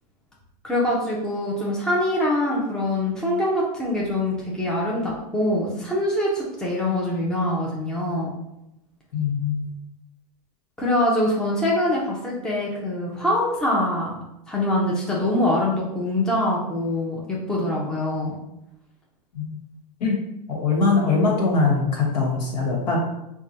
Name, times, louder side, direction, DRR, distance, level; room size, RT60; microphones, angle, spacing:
voice 1, 0.6-8.3 10.8-18.4, left 1 dB, 5° left, -4 dB, 0.6 m, -24 dB
voice 2, 9.1-9.7 19.3-19.6 20.0-20.2 20.5-23.0, left 4 dB, 70° left, -2 dB, 1.3 m, -22 dB
4.6 x 2.2 x 2.7 m, 0.86 s
hypercardioid pair, 130°, 21 cm